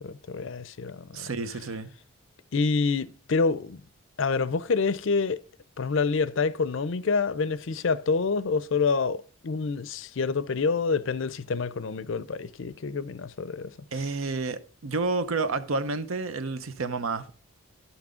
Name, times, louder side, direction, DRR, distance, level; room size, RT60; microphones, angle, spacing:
voice 1, 0.0-1.3 2.5-3.8 4.2-5.4 5.8-13.7, left 4 dB, 60° left, 0.5 m, -27 dB
voice 2, 1.1-1.9 13.9-17.3, right 3 dB, 70° right, 0.7 m, -30 dB
11.5 x 6.1 x 5.0 m
head